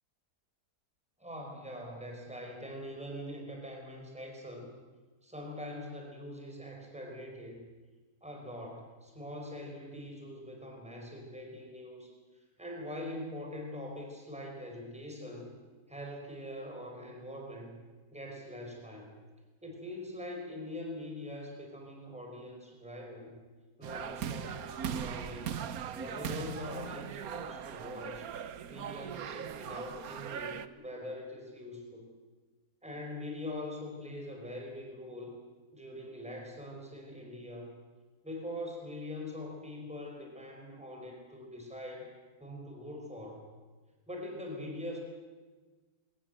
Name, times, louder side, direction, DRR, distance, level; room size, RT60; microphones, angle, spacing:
voice 1, 1.2-4.7 5.2-7.7 8.2-15.6 15.9-17.8 18.1-19.1 19.6-23.4 23.8-25.5 25.9-28.3 28.7-32.1 32.8-35.3 35.7-37.8 38.2-42.1 42.4-43.4 44.1-45.0, left 1 dB, 5° right, 1 dB, 4.6 m, -43 dB
sound 1, 23.8-30.7, right 8 dB, 70° right, 1.3 m, -39 dB
22.0 x 19.5 x 7.8 m, 1.3 s
omnidirectional pair, 1.7 m